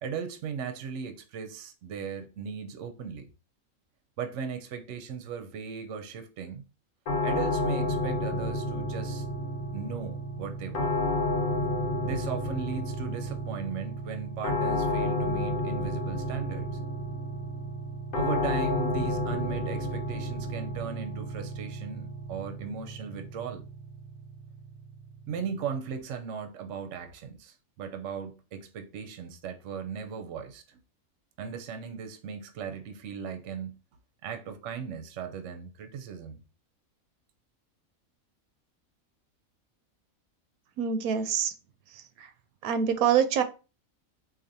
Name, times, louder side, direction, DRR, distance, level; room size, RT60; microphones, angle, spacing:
voice 1, 0.0-3.3 4.2-6.6 7.2-9.3 9.7-11.0 12.0-16.7 18.1-23.6 25.3-30.8 31.4-33.8 34.2-36.4, right 6 dB, 65° right, 0.9 m, -37 dB
sound 1, 7.1-26.0, left 1 dB, 80° left, 1.3 m, -31 dB
voice 2, 40.8-41.5 41.9-42.3 42.6-43.4, right 8 dB, 90° right, 1.0 m, -26 dB
4.1 x 2.7 x 2.6 m
omnidirectional pair, 1.5 m